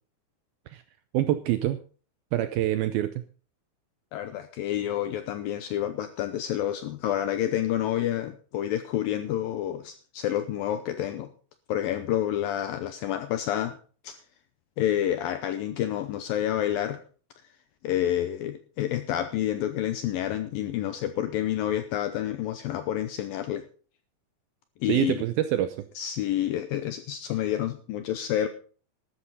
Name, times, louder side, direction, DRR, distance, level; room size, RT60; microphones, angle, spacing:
voice 1, 1.1-1.8 2.3-3.2 24.9-25.9, right 13 dB, 80° right, 11 dB, 2.2 m, -26 dB
voice 2, 4.1-11.3 11.7-13.8 14.0-14.2 14.8-17.0 17.8-23.6 24.8-25.2 26.0-28.5, left 11 dB, 80° left, 10 dB, 2.1 m, -29 dB
13.0 x 12.5 x 4.2 m, 0.39 s
omnidirectional pair, 5.0 m